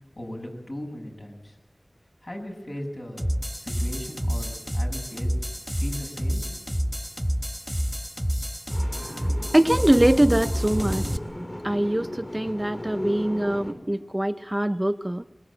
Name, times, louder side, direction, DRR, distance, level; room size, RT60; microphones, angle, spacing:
voice 1, 0.2-1.6 2.2-3.3 3.6-5.3 5.8-6.9, left 1 dB, 60° left, 1 dB, 7.7 m, -38 dB
sound 1, 3.2-11.2, equal, ahead, 1.7 m, -28 dB
sound 2, 8.7-13.7, left 1 dB, 40° left, 5.6 m, -36 dB
voice 2, 9.0-11.0 11.6-15.2, right 1 dB, 20° right, 10 dB, 0.8 m, -23 dB
23.0 x 21.0 x 8.8 m, 1.0 s
wide cardioid pair, 50°, 0 cm